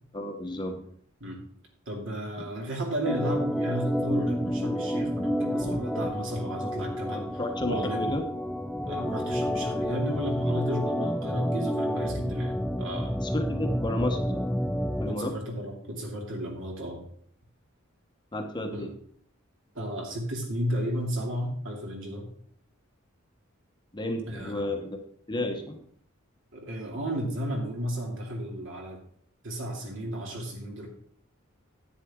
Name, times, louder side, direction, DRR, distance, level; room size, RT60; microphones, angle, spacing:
voice 1, 0.1-0.8 7.1-8.3 13.2-14.4 15.0-15.4 18.3-18.9 23.9-25.0 25.3-25.8, left 1 dB, 20° left, 4 dB, 1.0 m, -32 dB
voice 2, 1.9-7.3 7.7-8.2 8.9-13.2 15.1-17.0 18.7-18.8 19.7-22.3 24.3-24.6 26.5-29.0 29.4-30.9, right 1 dB, 65° right, 0 dB, 2.7 m, -33 dB
Organ, 3.0-15.2, equal, ahead, 0.3 m, -29 dB
10.0 x 9.1 x 3.7 m, 0.63 s
head